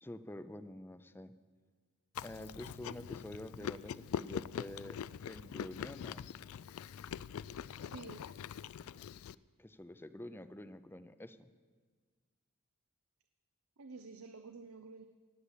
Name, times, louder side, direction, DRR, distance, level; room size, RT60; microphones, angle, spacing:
voice 1, 0.0-1.3 2.2-5.0 5.3-6.2 9.6-11.5, left 1 dB, 10° left, 12 dB, 0.5 m, -48 dB
Chewing mastication, 2.1-9.3, left 8 dB, 70° left, 0.3 m, -43 dB
voice 2, 7.9-8.2 13.8-15.0, right 4 dB, 80° right, 7 dB, 0.7 m, -49 dB
18.5 x 7.2 x 8.2 m, 1.5 s
head